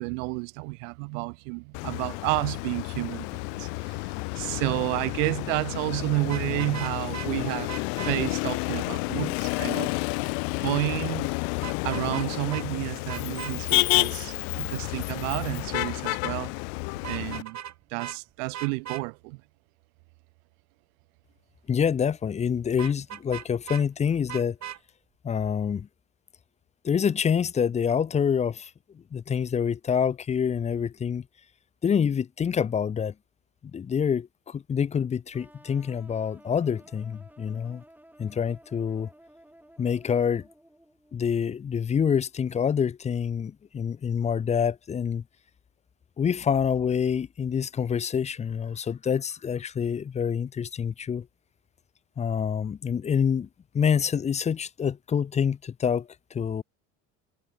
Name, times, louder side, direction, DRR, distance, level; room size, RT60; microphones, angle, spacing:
voice 1, 0.0-7.7 8.0-10.0 10.6-11.3 11.8-16.5 17.1-17.6 17.9-19.4, right 33 dB, 85° right, 0.8 m, -30 dB
Motor vehicle (road), 1.7-17.4, left 40 dB or more, 80° left, 1.2 m, -30 dB
Vehicle horn car horn honking, 6.2-7.3 7.7-8.2 11.6-12.3 12.5-12.6 13.1-13.5 17.0-17.7 18.0-18.2 18.5-19.0 22.8-23.8 24.3-24.8, right 10 dB, 45° right, 3.2 m, -38 dB
voice 2, 21.7-24.6 25.2-25.9 26.8-28.7 29.1-31.3 31.8-33.1 33.7-37.8 38.2-39.1 39.8-40.5 41.1-45.2 46.2-51.3 52.2-53.5 53.7-56.6, left 7 dB, 20° left, 0.4 m, -26 dB
sound 1, 35.3-41.1, right 1 dB, 5° right, 7.6 m, -54 dB
supercardioid pair, 80°, 37 cm